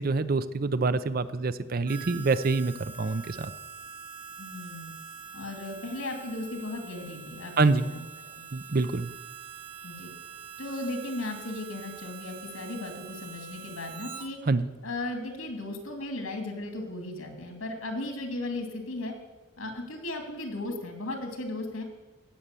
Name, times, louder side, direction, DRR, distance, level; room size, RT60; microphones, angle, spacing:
voice 1, 0.0-3.5 7.6-7.9 8.5-9.1 14.5-14.7, right 3 dB, 45° right, 13 dB, 0.5 m, -26 dB
Harmonica, 1.9-14.3, right 6 dB, 25° right, 1.3 m, -44 dB
voice 2, 4.4-4.9 5.3-8.0 8.3-8.4 9.8-10.1 10.6-14.4 14.8-19.1 19.6-21.8, left 2 dB, 85° left, 4 dB, 2.7 m, -36 dB
17.5 x 7.5 x 6.9 m, 1.2 s
head